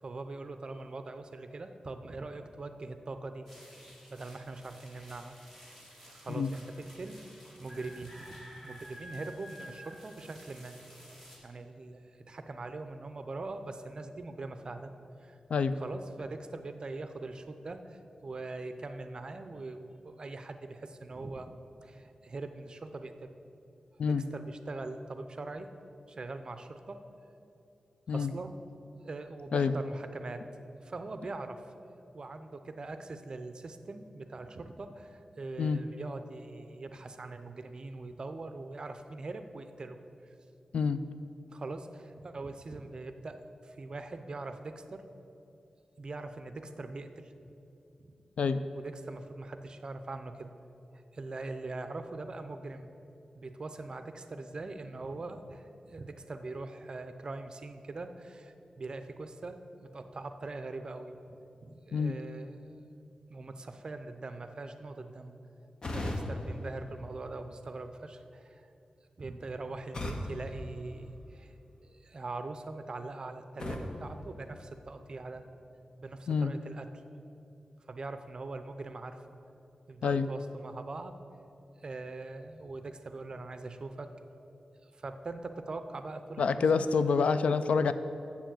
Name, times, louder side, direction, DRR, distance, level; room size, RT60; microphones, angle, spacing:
voice 1, 0.0-3.5 4.1-5.7 6.0-7.2 7.6-10.8 11.4-14.9 15.2-15.4 15.8-21.5 21.8-23.3 24.0-25.7 26.1-27.0 28.1-28.6 29.0-30.5 30.8-31.6 32.1-40.3 41.5-45.1 46.0-47.5 48.0-48.1 48.7-50.5 50.9-52.9 53.3-63.0 63.3-65.4 65.9-68.7 69.2-71.5 71.8-75.4 76.0-76.9 77.9-79.2 79.9-81.2 81.8-84.1 84.8-87.2, right 3 dB, 40° right, 9 dB, 0.5 m, -42 dB
sound 1, 3.5-11.4, equal, 15° left, 2.1 m, -52 dB
sound 2, 65.8-67.8 69.9-71.6 73.6-75.2, left 1 dB, 40° left, 0.8 m, -40 dB
voice 2, 86.4-87.9, left 5 dB, 80° left, 12 dB, 0.4 m, -27 dB
7.2 x 7.0 x 7.6 m, 2.8 s
wide cardioid pair, 135°, 2 cm